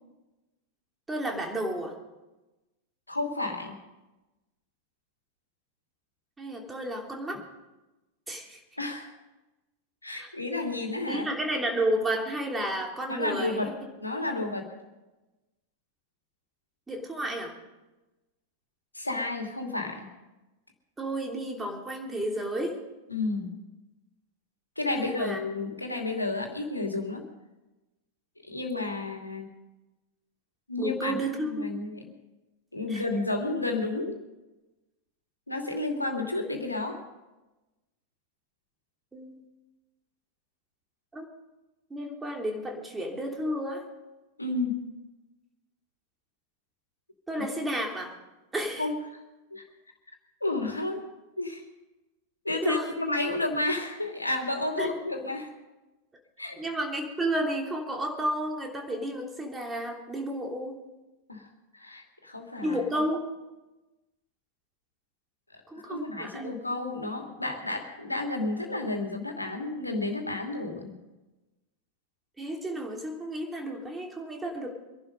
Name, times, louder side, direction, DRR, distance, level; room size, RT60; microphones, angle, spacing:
voice 1, 1.1-1.9 6.4-7.4 8.3-8.6 10.1-10.3 11.1-13.7 16.9-17.5 21.0-22.8 24.9-25.4 30.8-31.7 32.9-33.0 39.1-39.5 41.1-41.3 41.9-43.8 47.3-48.1 48.5-48.9 52.6-52.9 54.8-55.0 56.6-60.8 62.6-63.2 65.7-66.5 72.4-74.7, right 1 dB, 10° right, 1 dB, 3.1 m, -32 dB
voice 2, 3.1-3.8 8.8-9.1 10.0-11.3 13.1-13.7 14.0-14.7 18.9-20.1 23.1-23.6 24.8-27.3 28.4-29.5 30.7-31.2 31.4-32.0 32.7-34.2 35.5-37.0 44.4-44.9 48.8-48.9 49.5-49.6 50.4-51.0 51.4-51.6 52.4-55.5 56.4-56.6 61.3-61.5 61.7-62.8 65.5-70.9, left 2 dB, 85° left, 3 dB, 2.5 m, -31 dB
24.5 x 11.5 x 5.2 m, 1.1 s
figure-of-eight pair, 90°, 0 cm